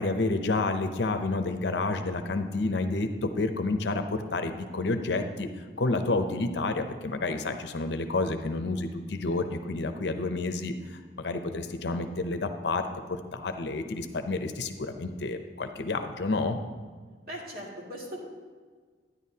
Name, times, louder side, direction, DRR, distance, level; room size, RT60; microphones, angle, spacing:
voice 1, 0.0-5.5 5.8-16.6, left 3 dB, 70° left, 7 dB, 0.7 m, -30 dB
voice 2, 17.2-18.2, equal, 55° right, -3 dB, 2.1 m, -39 dB
11.0 x 9.9 x 2.8 m, 1.5 s
head